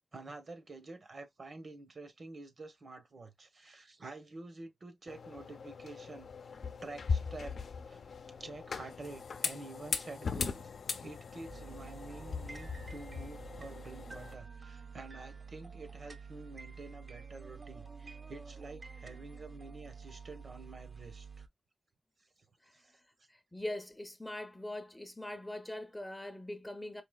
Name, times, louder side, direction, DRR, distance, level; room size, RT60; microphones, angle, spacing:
voice 1, 0.1-6.3 6.8-7.6 7.9-10.7 11.0-21.5 22.7-23.0, right 3 dB, 50° right, 0.9 m, -49 dB
sound 1, 5.1-14.3, left 5 dB, 75° left, 0.6 m, -39 dB
sound 2, 11.5-21.5, right 5 dB, 35° right, 0.6 m, -49 dB
voice 2, 23.3-27.0, left 1 dB, 10° left, 0.6 m, -42 dB
4.9 x 2.8 x 2.3 m
wide cardioid pair, 110°, 0 cm